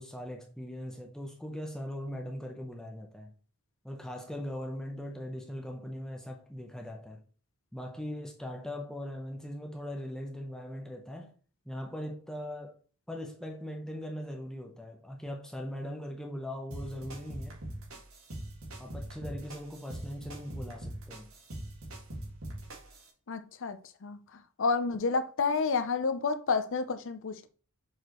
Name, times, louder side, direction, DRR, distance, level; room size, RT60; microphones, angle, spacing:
voice 1, 0.0-3.3 3.8-7.2 7.7-11.3 11.7-12.8 13.1-17.6 18.8-21.3, equal, 5° left, 0.8 m, -40 dB
sound 1, 16.7-23.1, right 1 dB, 65° right, 2.1 m, -42 dB
voice 2, 23.3-24.2 24.6-27.5, left 4 dB, 60° left, 0.7 m, -30 dB
6.4 x 4.9 x 3.0 m
head